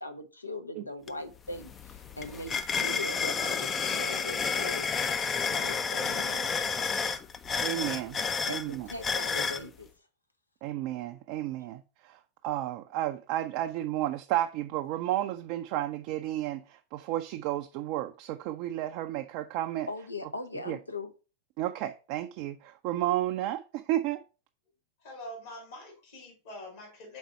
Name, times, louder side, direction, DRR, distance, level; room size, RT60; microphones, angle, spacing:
voice 1, 0.0-4.9 5.5-6.6 8.5-9.9 19.9-21.1, left 2 dB, 80° left, 0.8 m, -40 dB
sound 1, 1.1-1.2 1.5-9.6, left 5 dB, 20° left, 0.4 m, -31 dB
voice 2, 7.6-8.9 10.6-19.9 20.7-20.8 21.6-24.2, right 13 dB, 45° right, 0.4 m, -32 dB
voice 3, 25.0-27.2, left 1 dB, 60° left, 3.1 m, -45 dB
5.2 x 4.0 x 4.6 m
figure-of-eight pair, 90°, 0 cm